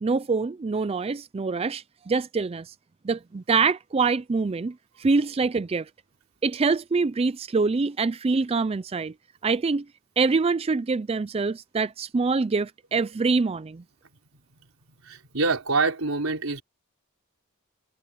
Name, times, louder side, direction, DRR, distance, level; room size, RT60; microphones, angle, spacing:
voice 1, 0.0-2.7 3.0-5.9 6.4-9.1 9.4-9.9 10.2-13.8, right 4 dB, 30° right, 0.4 m, -25 dB
voice 2, 15.0-16.6, right 3 dB, 90° right, 3.9 m, -25 dB
head